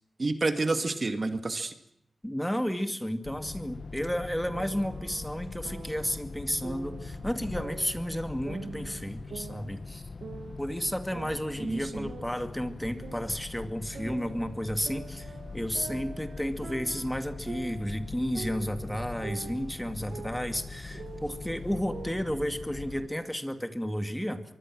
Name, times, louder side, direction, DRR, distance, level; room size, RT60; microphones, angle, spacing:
voice 1, 0.2-1.7 11.6-12.1, right 3 dB, 40° right, 8 dB, 2.1 m, -29 dB
voice 2, 2.2-10.0 10.6-24.4, equal, 5° left, 8 dB, 2.2 m, -32 dB
sound 1, 3.2-23.1, left 4 dB, 50° left, 1.4 m, -42 dB
sound 2, 4.5-6.2 6.6-8.2 8.5-10.7 11.1-13.6 13.9-18.1 18.3-22.3, right 5 dB, 85° right, 2.1 m, -45 dB
24.0 x 24.0 x 6.3 m, 0.74 s
wide cardioid pair, 90°, 0 cm